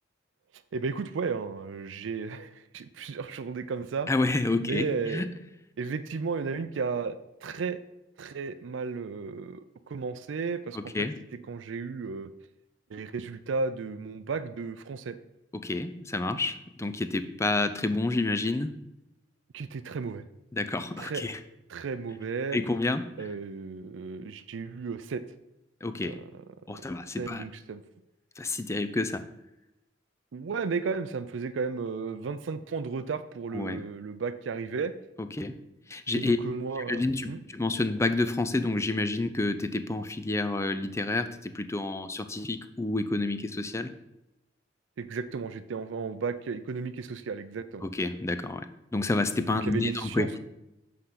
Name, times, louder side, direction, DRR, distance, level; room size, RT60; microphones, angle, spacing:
voice 1, 0.7-4.1 4.6-5.2 5.8-7.1 7.4-7.8 8.2-11.1 11.5-12.3 12.9-15.2 19.5-20.2 21.0-21.2 21.7-22.6 23.2-25.2 26.0-26.2 27.2-27.8 30.3-34.9 36.1-37.4 45.0-47.9 49.5-50.4, right 5 dB, 75° right, 10 dB, 0.4 m, -34 dB
voice 2, 4.1-5.3 10.7-11.2 15.5-18.8 20.5-21.4 22.5-23.3 25.8-26.2 26.7-27.5 28.4-29.2 33.5-33.8 35.2-35.6 35.9-36.4 36.8-43.9 47.8-50.4, left 2 dB, 15° left, 10 dB, 0.4 m, -29 dB
7.9 x 3.7 x 5.7 m, 0.89 s
head